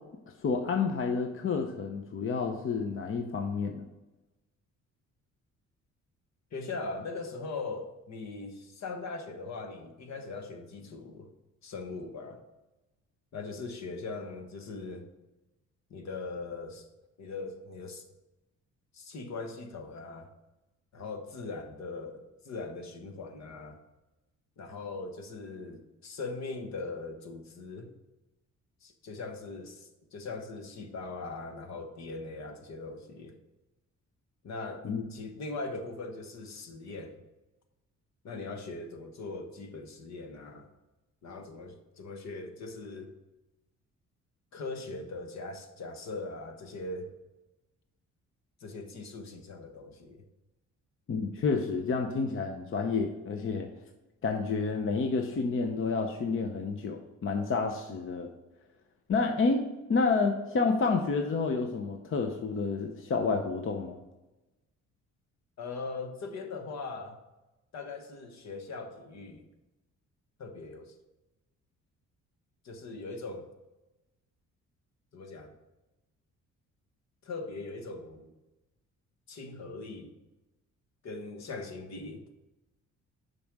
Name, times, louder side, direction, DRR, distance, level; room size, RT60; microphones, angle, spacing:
voice 1, 0.4-3.8 34.8-35.0 51.1-53.7 54.2-58.3 59.1-64.0, left 4 dB, 45° left, 4 dB, 0.8 m, -29 dB
voice 2, 6.5-11.3 11.6-12.4 13.3-15.0 15.9-16.9 17.2-18.0 18.9-20.3 20.9-23.8 24.6-27.9 28.8-33.3 34.4-37.2 38.2-40.7 41.2-43.1 44.5-47.1 48.6-50.2 65.6-67.2 67.7-69.5 70.4-70.9 72.6-73.5 75.1-75.6 77.2-78.3 79.3-80.1 81.0-82.2, left 3 dB, 60° left, 6 dB, 1.2 m, -40 dB
6.9 x 5.4 x 6.0 m, 1.0 s
cardioid pair, 90°, 30 cm